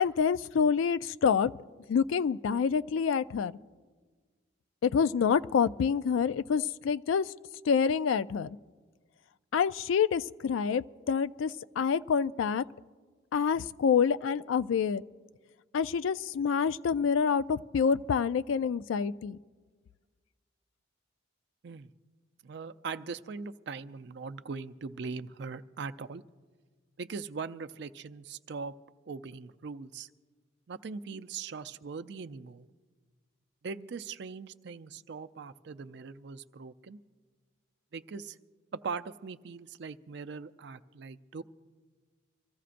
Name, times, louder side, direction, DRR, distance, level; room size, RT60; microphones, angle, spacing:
voice 1, 0.0-1.5 1.9-3.5 4.8-7.3 7.7-8.6 9.5-12.6 13.3-15.0 15.7-19.4, left 6 dB, 80° left, 14 dB, 0.3 m, -27 dB
voice 2, 22.4-26.2 27.0-28.7 29.1-30.1 30.7-32.7 33.6-37.0 37.9-38.4 38.7-41.4, right 5 dB, 55° right, 11 dB, 0.4 m, -40 dB
25.5 x 15.0 x 2.5 m, 1.5 s
head